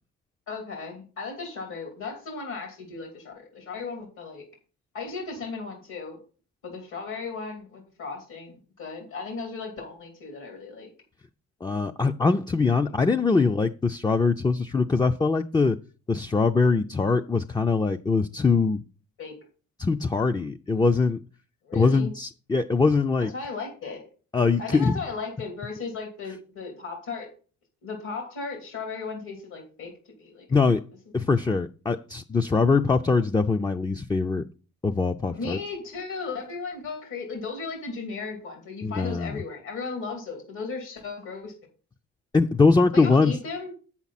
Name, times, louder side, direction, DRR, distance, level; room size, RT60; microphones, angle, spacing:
voice 1, 0.5-4.4 4.9-6.2 6.6-10.9 19.2-19.3 21.6-22.1 23.3-24.0 24.6-27.3 27.8-29.9 30.2-30.7 35.3-41.5 42.9-43.7, left 4 dB, 75° left, 2.6 m, -36 dB
voice 2, 11.6-15.8 16.1-18.8 19.8-21.2 21.7-23.3 24.3-25.0 30.5-30.8 31.1-34.4 34.8-35.6 38.8-39.4 42.3-43.4, left 4 dB, 15° left, 0.4 m, -22 dB
8.2 x 7.2 x 4.1 m
cardioid pair, 90°, 30 cm